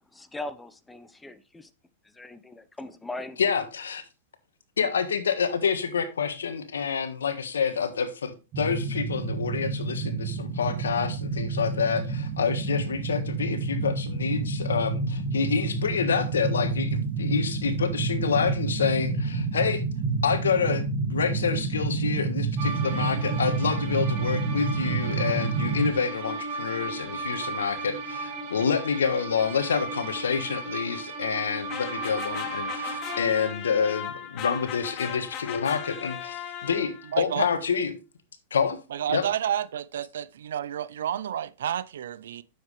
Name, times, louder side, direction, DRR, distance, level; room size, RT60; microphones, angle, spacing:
voice 1, 0.0-1.7 2.0-3.4, left 2 dB, 10° left, 0.9 m, -40 dB
voice 2, 3.4-4.0 4.8-19.8 20.2-20.8 21.1-37.9 38.5-38.8 39.1-39.2, left 6 dB, 90° left, 1.4 m, -28 dB
sound 1, 8.5-25.9, right 4 dB, 35° right, 1.8 m, -29 dB
sound 2, 22.6-33.2, right 3 dB, 55° right, 2.7 m, -36 dB
sound 3, 31.7-37.2, left 9 dB, 40° left, 1.6 m, -37 dB
voice 3, 37.1-37.5 38.9-42.4, right 10 dB, 75° right, 0.6 m, -30 dB
9.4 x 7.3 x 3.2 m
hypercardioid pair, 115°, 0 cm